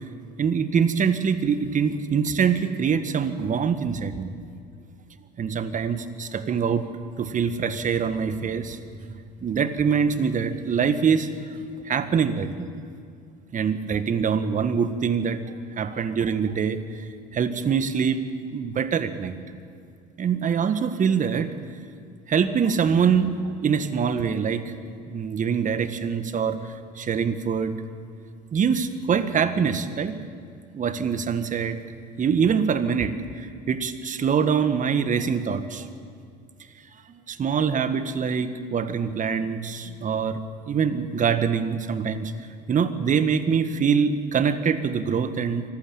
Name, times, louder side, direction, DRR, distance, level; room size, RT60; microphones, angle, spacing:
voice 1, 0.4-4.4 5.4-6.8 7.2-8.8 9.4-11.6 11.8-12.7 13.5-17.0 17.3-18.2 18.5-19.4 20.2-21.5 22.3-23.4 23.6-24.7 25.1-27.7 28.5-30.2 30.7-31.8 32.2-35.9 37.1-40.4 40.7-42.3 42.7-45.6, right 6 dB, 35° right, 11 dB, 1.7 m, -24 dB
24.0 x 15.5 x 8.8 m, 2.3 s
hypercardioid pair, 75°, 21 cm